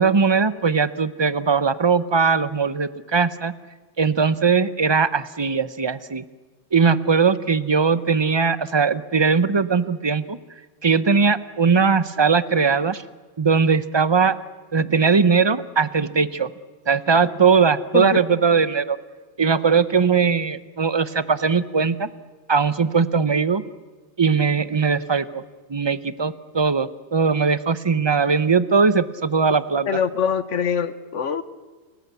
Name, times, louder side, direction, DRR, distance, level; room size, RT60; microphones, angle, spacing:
voice 1, 0.0-3.5 4.0-6.2 6.7-10.4 10.8-13.0 13.4-14.4 14.7-16.5 16.9-19.0 19.4-22.1 22.5-23.6 24.2-25.4 25.7-29.9, right 5 dB, 30° right, 15 dB, 0.7 m, -20 dB
voice 2, 29.9-31.4, left 6 dB, 85° left, 14 dB, 1.5 m, -23 dB
30.0 x 16.5 x 8.2 m, 1.4 s
omnidirectional pair, 1.2 m